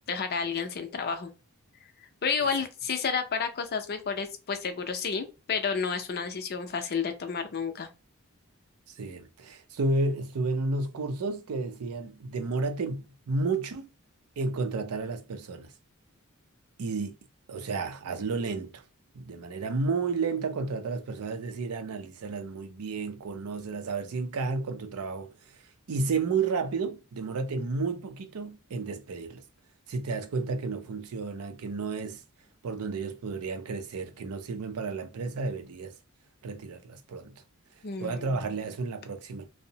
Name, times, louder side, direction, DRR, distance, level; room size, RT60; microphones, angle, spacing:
voice 1, 0.1-1.3 2.2-7.9 37.8-38.4, left 5 dB, 45° left, 0.5 m, -31 dB
voice 2, 8.9-13.9 14.4-15.7 16.8-17.2 17.5-18.8 19.1-25.6 25.9-29.4 29.9-32.2 32.6-36.0 36.4-37.4 38.0-39.5, right 3 dB, 80° right, 0.5 m, -32 dB
2.7 x 2.0 x 2.7 m
head